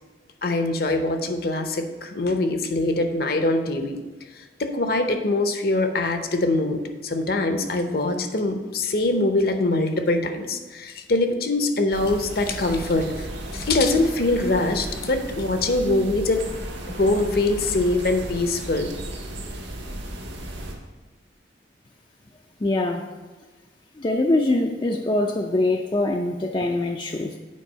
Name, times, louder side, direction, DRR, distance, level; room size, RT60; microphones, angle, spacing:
voice 1, 0.4-4.0 4.4-13.3 13.5-16.4 16.9-18.9, left 2 dB, 55° left, 6 dB, 0.7 m, -23 dB
sound 1, 11.9-20.7, right 1 dB, 80° right, 1.5 m, -35 dB
voice 2, 22.6-23.1 24.0-27.4, left 2 dB, 25° left, 2 dB, 0.4 m, -23 dB
8.4 x 4.7 x 5.5 m, 1.3 s
head